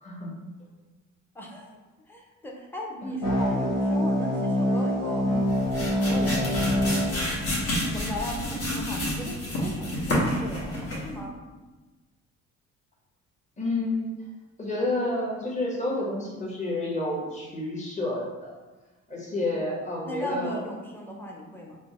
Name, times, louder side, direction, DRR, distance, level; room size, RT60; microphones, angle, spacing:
voice 1, 1.3-1.7 2.1-5.3 5.6-6.9 7.9-11.4 20.0-21.8, equal, 5° left, -1 dB, 0.6 m, -37 dB
sound 1, 3.2-8.2, equal, 80° left, 1.4 m, -26 dB
sound 2, 5.3-11.2, left 1 dB, 50° left, 1.2 m, -29 dB
voice 2, 13.6-14.2 14.6-18.6 19.1-20.6, left 2 dB, 25° left, -3 dB, 1.0 m, -30 dB
3.7 x 2.0 x 3.5 m, 1.2 s
cardioid pair, 90°, 30 cm